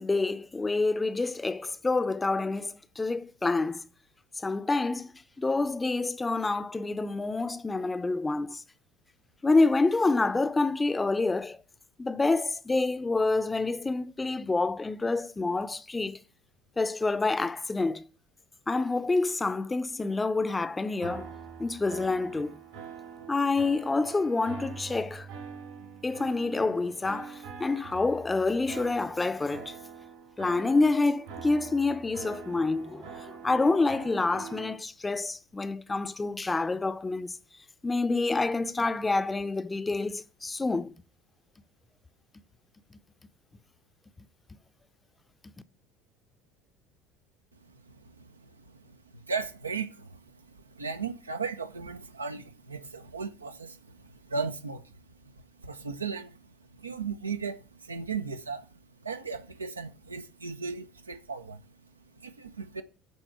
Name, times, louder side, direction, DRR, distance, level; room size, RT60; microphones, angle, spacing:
voice 1, 0.0-3.8 4.4-5.1 5.4-8.6 9.4-11.6 12.0-16.2 16.8-18.1 18.7-21.3 21.6-22.6 23.3-25.3 26.0-29.8 30.4-37.4 37.8-40.9, left 3 dB, 15° left, 0.6 m, -27 dB
sound 1, 21.0-34.7, right 6 dB, 65° right, 2.0 m, -44 dB
voice 2, 47.5-62.8, right 5 dB, 85° right, 0.7 m, -37 dB
9.3 x 4.2 x 6.9 m
figure-of-eight pair, 65°, 0 cm